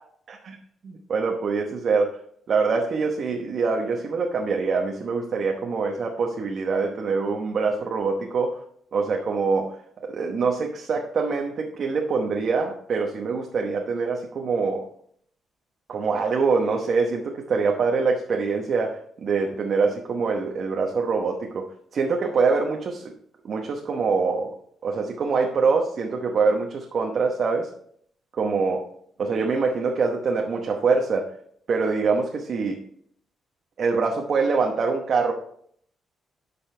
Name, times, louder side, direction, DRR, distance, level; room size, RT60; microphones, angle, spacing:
voice 1, 1.1-2.2 2.5-8.6 8.9-9.7 10.1-14.9 15.9-23.1 23.4-24.5 24.8-27.7 28.3-28.9 29.2-31.3 31.7-32.8 33.8-35.3, right 4 dB, 50° right, 1 dB, 0.9 m, -24 dB
10.0 x 5.4 x 3.3 m, 0.64 s
cardioid pair, 110°, 0 cm